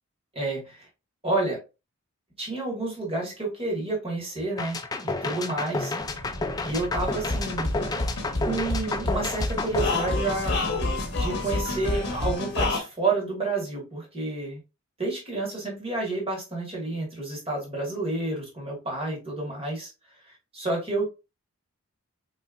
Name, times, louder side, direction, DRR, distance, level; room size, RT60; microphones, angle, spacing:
voice 1, 0.3-0.9 1.2-1.6 2.4-5.9 6.6-7.7 8.4-10.6 11.1-14.6 15.0-19.9 20.3-21.0, right 2 dB, 25° right, -3 dB, 1.7 m, -30 dB
sound 1, 4.6-10.8, left 3 dB, 15° left, 0.3 m, -31 dB
sound 2, 6.0-12.3, equal, 85° right, 1.6 m, -39 dB
sound 3, 7.0-12.8, left 2 dB, 50° left, 1.0 m, -28 dB
4.4 x 3.2 x 2.4 m, 0.28 s
head